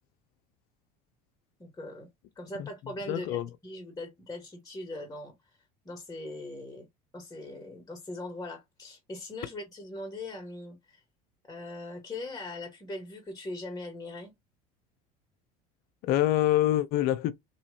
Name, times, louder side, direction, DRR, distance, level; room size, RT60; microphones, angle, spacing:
voice 1, 1.6-2.1 2.4-5.3 5.8-6.9 7.1-11.0 11.4-14.3, left 2 dB, 20° left, 1.5 m, -40 dB
voice 2, 3.1-3.5 16.0-17.3, left 13 dB, 55° left, 0.5 m, -25 dB
3.0 x 2.8 x 2.8 m
hypercardioid pair, 75°, 19 cm